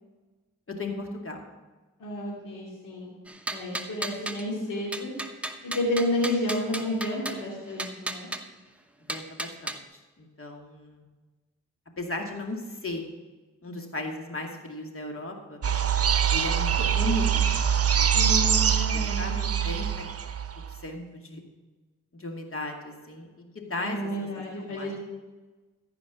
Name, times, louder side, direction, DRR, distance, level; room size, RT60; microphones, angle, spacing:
voice 1, 0.8-1.4 9.0-11.1 12.0-13.0 13.6-15.6 16.3-17.7 18.0-18.1 18.6-20.1 20.7-21.4 22.1-24.3 24.7-24.9, left 2 dB, 45° left, 2 dB, 2.4 m, -36 dB
voice 2, 2.0-3.1 3.5-5.1 5.6-8.3 18.1-19.4 23.7-24.9, left 1 dB, 85° left, -5 dB, 2.8 m, -31 dB
sound 1, 3.3-4.5 4.9-7.4 7.8-8.4 9.1-9.8, right 1 dB, 5° right, 1.0 m, -34 dB
sound 2, 15.6-20.8, right 8 dB, 45° right, 0.8 m, -24 dB
14.0 x 5.2 x 6.2 m, 1.2 s
supercardioid pair, 45°, 32 cm